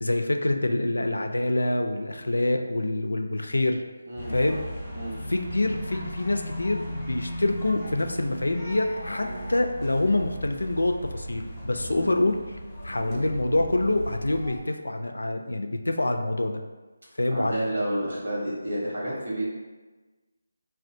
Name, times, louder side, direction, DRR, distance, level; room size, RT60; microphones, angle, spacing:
voice 1, 0.0-3.8 4.3-4.6 5.3-12.4 12.8-16.6 17.2-17.6, left 2 dB, 85° left, 5 dB, 0.3 m, -26 dB
sound 1, 4.2-14.6, equal, 20° left, 0.8 m, -37 dB
voice 2, 17.3-19.4, right 1 dB, 70° right, -5 dB, 1.3 m, -30 dB
3.3 x 2.4 x 2.6 m, 1.2 s
figure-of-eight pair, 160°, 0 cm